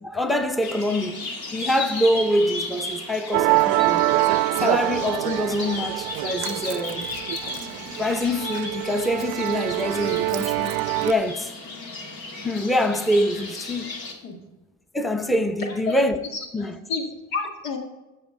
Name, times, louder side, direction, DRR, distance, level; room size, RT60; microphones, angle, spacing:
voice 1, 0.0-4.0 4.6-7.1 8.0-11.5 11.9-12.0 12.4-13.9 14.9-16.2 16.5-16.8, left 1 dB, ahead, 0.8 m, -25 dB
sound 1, 0.6-14.1, left 3 dB, 65° left, 2.0 m, -35 dB
Musical instrument, 3.3-11.1, right 18 dB, 70° right, 0.5 m, -25 dB
voice 2, 16.3-17.8, left 4 dB, 80° left, 2.0 m, -30 dB
15.0 x 5.5 x 3.7 m
supercardioid pair, 65°, 39 cm